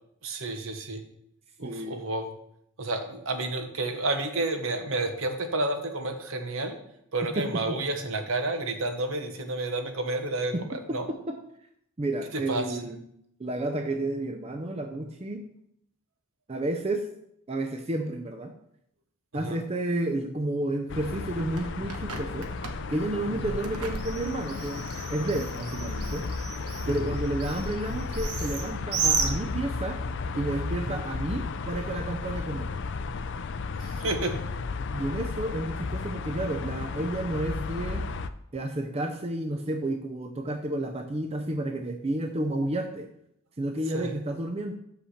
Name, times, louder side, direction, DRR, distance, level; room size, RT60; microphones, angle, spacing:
voice 1, 0.2-1.0 1.6-2.3 2.8-6.8 7.1-11.1 12.3-12.8 19.3-19.6 23.3-23.4 26.8-27.1 30.9-31.0 33.8-34.4 43.9-44.1, right 2 dB, 60° right, 6 dB, 1.0 m, -30 dB
voice 2, 1.6-2.0 7.4-7.8 10.5-10.6 10.9-11.3 12.0-13.0 13.4-15.5 16.5-17.1 17.5-18.5 19.3-22.5 22.9-26.3 26.9-30.0 30.3-32.7 34.9-38.0 38.5-43.1 43.6-44.7, right 1 dB, 25° right, 5 dB, 0.5 m, -31 dB
sound 1, 20.9-38.3, left 4 dB, 55° left, 0.4 m, -34 dB
Bird, 21.1-30.0, right 5 dB, 85° right, 1.1 m, -34 dB
5.7 x 5.7 x 6.5 m, 0.74 s
head